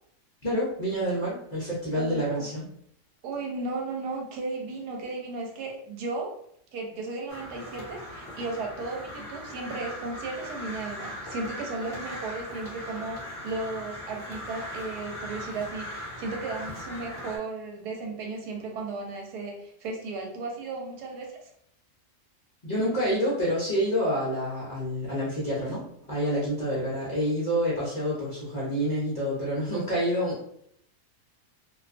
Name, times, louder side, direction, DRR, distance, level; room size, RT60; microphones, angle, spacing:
voice 1, 0.4-2.7 22.6-30.4, equal, 45° left, -8 dB, 0.5 m, -28 dB
voice 2, 1.9-2.5 3.2-6.4 6.7-21.5, right 3 dB, 85° right, 0 dB, 1.2 m, -35 dB
Crow, 7.3-17.4, equal, 15° left, 1.2 m, -39 dB
2.6 x 2.2 x 2.5 m, 0.68 s
omnidirectional pair, 1.7 m